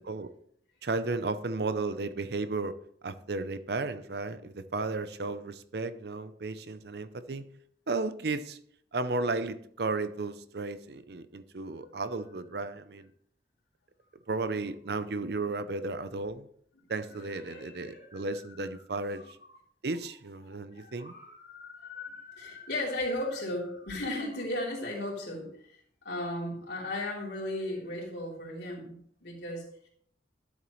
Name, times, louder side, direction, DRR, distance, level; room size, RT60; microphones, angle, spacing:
voice 1, 0.8-2.8 3.0-7.5 7.9-8.6 8.9-13.1 14.3-16.5 16.9-19.2 19.8-21.1, right 3 dB, 60° right, 12 dB, 0.6 m, -34 dB
voice 2, 17.1-18.2 19.1-19.3 20.7-25.8 26.0-29.0 29.2-29.6, left 1 dB, 65° left, -3 dB, 3.4 m, -36 dB
12.0 x 7.2 x 3.1 m, 0.64 s
head